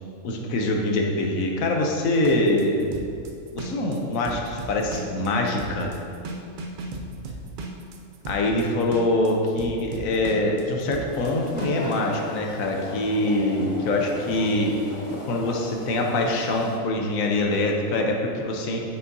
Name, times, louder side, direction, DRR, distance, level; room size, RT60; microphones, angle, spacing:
voice 1, 0.2-2.9 3.5-5.9 8.3-14.8 15.2-18.8, left 2 dB, 70° left, 1 dB, 1.1 m, -24 dB
sound 1, 2.2-12.0, right 2 dB, 80° right, 0.4 m, -36 dB
sound 2, 11.0-16.8, left 1 dB, 55° left, 0.3 m, -37 dB
6.8 x 5.5 x 2.7 m, 2.5 s
omnidirectional pair, 1.5 m